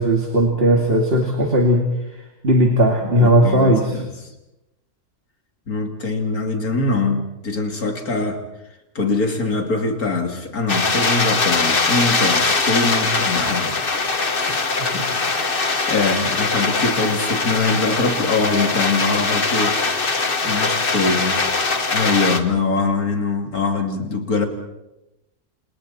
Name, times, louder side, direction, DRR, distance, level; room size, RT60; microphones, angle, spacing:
voice 1, 0.0-1.8 2.4-3.8, right 1 dB, 40° right, 1 dB, 2.7 m, -16 dB
voice 2, 3.0-4.3 5.7-8.4 8.9-20.1 20.4-21.4 21.9-24.5, left 3 dB, 70° left, 3 dB, 3.3 m, -23 dB
sound 1, 10.7-22.4, left 4 dB, 35° left, 1.6 m, -21 dB
29.5 x 27.5 x 4.4 m, 0.95 s
omnidirectional pair, 1.6 m